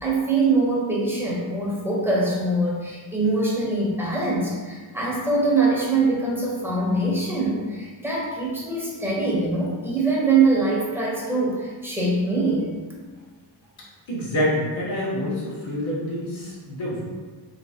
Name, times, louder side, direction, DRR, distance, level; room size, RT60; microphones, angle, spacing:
voice 1, 0.0-12.8, right 3 dB, 5° right, -4 dB, 0.8 m, -23 dB
voice 2, 14.1-17.0, equal, 85° left, -7 dB, 1.3 m, -27 dB
3.2 x 3.1 x 2.8 m, 1.4 s
wide cardioid pair, 100°, 46 cm